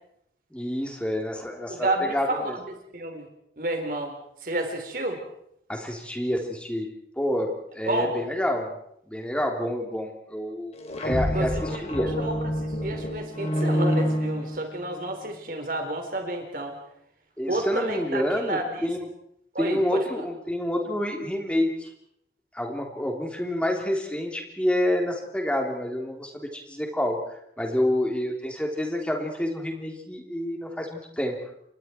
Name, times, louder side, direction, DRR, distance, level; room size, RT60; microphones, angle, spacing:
voice 1, 0.5-2.6 5.7-6.9 7.2-8.7 9.1-12.1 17.4-19.0 19.6-21.9 22.5-27.2 27.6-31.3, left 1 dB, 5° left, 2 dB, 3.4 m, -28 dB
voice 2, 1.7-3.3 3.6-4.2 4.4-5.2 7.9-8.1 11.3-12.4 12.6-16.8 17.5-18.9 19.5-20.2, right 1 dB, 50° right, 4 dB, 4.1 m, -30 dB
sound 1, 10.7-15.0, equal, 35° left, 3.2 m, -27 dB
29.0 x 24.0 x 4.6 m, 0.73 s
head